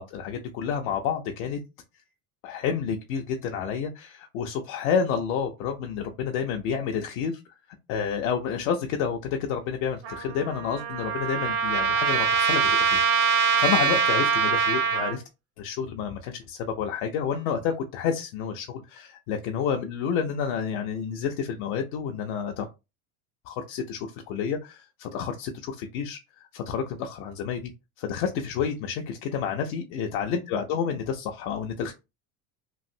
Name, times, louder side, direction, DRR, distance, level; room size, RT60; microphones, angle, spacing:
voice 1, 0.0-1.6 2.4-7.4 7.9-15.2 15.6-22.7 23.5-26.2 26.5-27.7 28.0-31.9, left 7 dB, 70° left, 3 dB, 0.6 m, -29 dB
Trumpet, 10.0-15.2, right 6 dB, 60° right, 1.1 m, -24 dB
3.1 x 2.5 x 2.7 m, 0.26 s
hypercardioid pair, 85°, 42 cm